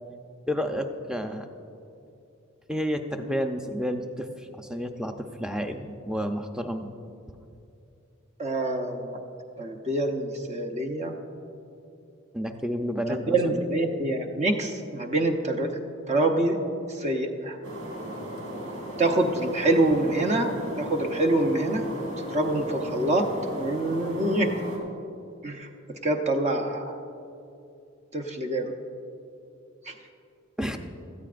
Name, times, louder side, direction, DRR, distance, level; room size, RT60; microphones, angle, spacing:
voice 1, 0.5-1.5 2.7-4.3 4.6-6.9 12.3-13.6 30.6-30.8, equal, 5° right, 5 dB, 0.6 m, -30 dB
voice 2, 8.4-9.2 9.6-11.2 13.1-15.7 16.1-16.6 16.9-17.6 19.0-21.9 22.3-24.5 25.4-25.7 26.0-26.9 28.1-28.7 29.9-30.0, right 2 dB, 35° right, 2 dB, 0.8 m, -26 dB
sound 1, 17.6-24.8, right 1 dB, 80° right, 2.8 m, -36 dB
18.0 x 13.5 x 2.5 m, 2.6 s
head